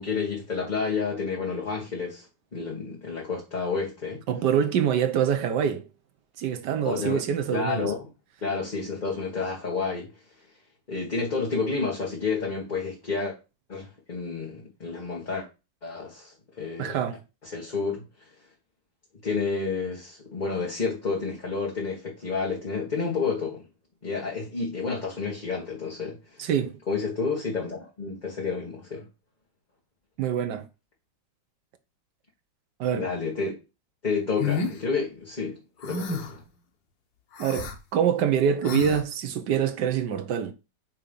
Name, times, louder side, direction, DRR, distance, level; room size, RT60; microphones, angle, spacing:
voice 1, 0.0-2.3 2.5-4.2 6.8-7.2 7.5-8.1 8.4-10.1 10.9-13.3 13.7-15.5 15.8-17.0 17.4-18.1 19.2-23.6 24.0-26.4 26.9-29.0 32.9-33.5 34.0-35.6 35.8-36.4, left 4 dB, 25° left, 1.5 m, -30 dB
voice 2, 4.3-5.9 6.4-7.9 16.8-17.2 26.4-26.8 30.2-30.6 32.8-33.1 37.4-40.5, right 8 dB, 70° right, 1.5 m, -25 dB
sound 1, 34.4-34.8 35.8-36.4 37.3-37.7 38.6-39.0, left 5 dB, 85° left, 1.8 m, -29 dB
8.7 x 3.0 x 5.3 m
omnidirectional pair, 1.9 m